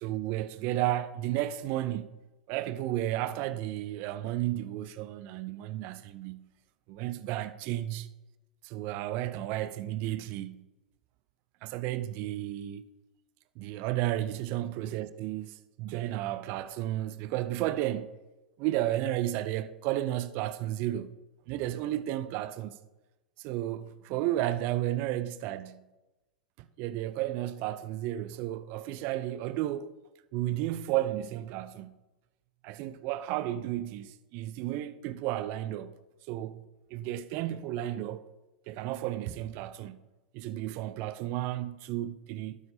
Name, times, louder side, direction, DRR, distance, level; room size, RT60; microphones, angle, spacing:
voice 1, 0.0-2.1 2.5-6.5 6.9-8.1 8.6-10.7 11.6-12.8 13.6-18.2 18.6-21.1 21.5-22.8 23.4-25.9 26.6-29.9 30.3-32.0 32.6-35.9 36.3-36.6 36.9-38.3 38.7-40.0 40.3-42.6, right 14 dB, 50° right, 0.5 m, -33 dB
12.0 x 9.8 x 2.7 m
hypercardioid pair, 95°, 4 cm